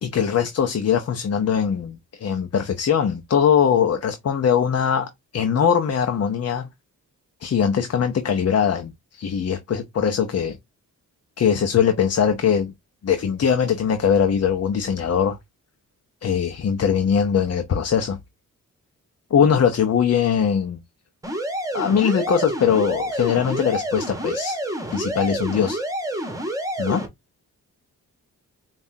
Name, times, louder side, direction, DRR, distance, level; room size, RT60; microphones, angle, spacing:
voice 1, 0.0-6.7 7.4-10.6 11.4-12.7 13.0-15.4 16.2-18.2 19.3-20.8 21.7-24.6 24.9-25.8 26.8-27.1, left 7 dB, 50° left, 0.6 m, -21 dB
sound 1, 21.2-27.1, right 1 dB, 10° right, 1.2 m, -28 dB
5.3 x 2.4 x 2.6 m
cardioid pair, 80°, 34 cm